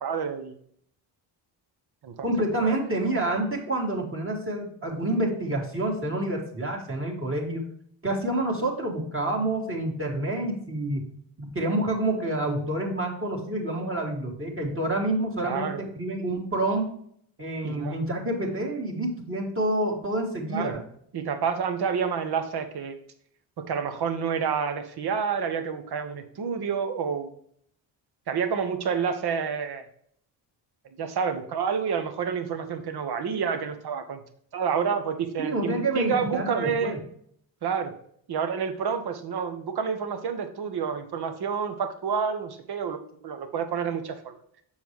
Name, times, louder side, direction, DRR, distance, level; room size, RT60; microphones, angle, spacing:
voice 1, 0.0-0.6 2.0-2.3 2.6-2.8 15.4-15.8 17.6-18.0 20.5-20.8 21.1-23.0 23.6-27.3 28.3-29.8 31.0-34.2 34.5-37.0 37.6-37.9 38.3-44.4, right 6 dB, 55° right, 8 dB, 1.1 m, -29 dB
voice 2, 2.2-7.7 8.0-11.0 11.4-16.9 17.4-20.8 35.4-37.0, right 1 dB, 30° right, 0 dB, 2.0 m, -28 dB
7.0 x 5.6 x 3.1 m, 0.64 s
cardioid pair, 80°, 46 cm